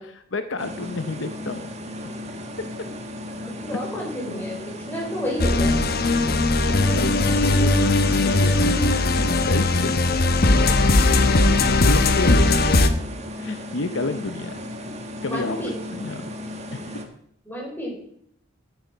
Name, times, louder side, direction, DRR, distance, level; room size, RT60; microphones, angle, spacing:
voice 1, 0.1-1.7 2.0-2.1 6.2-8.6 9.1-10.1 10.4-12.9 13.4-14.6 15.2-16.3 16.7-17.0, left 3 dB, 70° left, 9 dB, 0.9 m, -31 dB
sound 1, 0.6-17.0, left 1 dB, 35° right, 1.6 m, -35 dB
voice 2, 3.4-4.6 4.9-5.8 15.3-15.7 17.4-18.0, left 1 dB, 10° left, -3 dB, 5.1 m, -30 dB
sound 2, 5.4-12.9, left 2 dB, 50° left, 1.0 m, -19 dB
13.0 x 9.5 x 5.3 m, 0.69 s
head